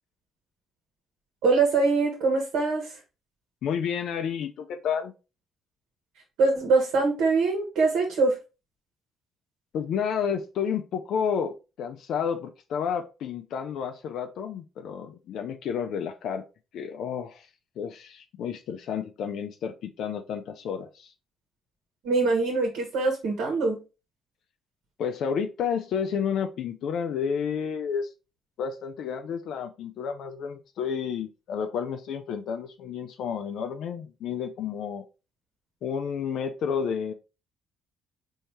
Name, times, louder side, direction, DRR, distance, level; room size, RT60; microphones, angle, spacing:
voice 1, 1.4-2.9 6.4-8.4 22.0-23.8, right 3 dB, 80° right, 1 dB, 1.2 m, -23 dB
voice 2, 3.6-5.1 9.7-16.4 16.7-17.5 17.8-21.1 25.0-28.1 28.6-35.0 35.8-37.1, left 7 dB, 75° left, 6 dB, 0.4 m, -31 dB
4.3 x 2.7 x 3.1 m, 0.30 s
supercardioid pair, 70°, 0 cm